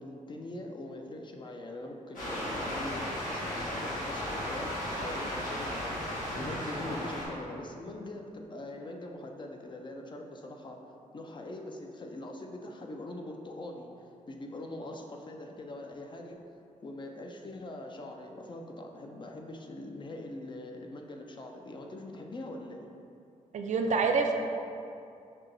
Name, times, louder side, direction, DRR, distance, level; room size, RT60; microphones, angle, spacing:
voice 1, 0.0-4.7 4.9-10.8 11.1-13.9 14.3-16.4 16.8-22.9, left 1 dB, 35° left, 2 dB, 0.4 m, -42 dB
sound 1, 2.1-7.3, equal, 80° left, 1.5 m, -35 dB
voice 2, 23.5-24.3, right 4 dB, 60° right, 3 dB, 0.4 m, -26 dB
5.5 x 2.8 x 2.6 m, 2.5 s
cardioid pair, 80°, 14 cm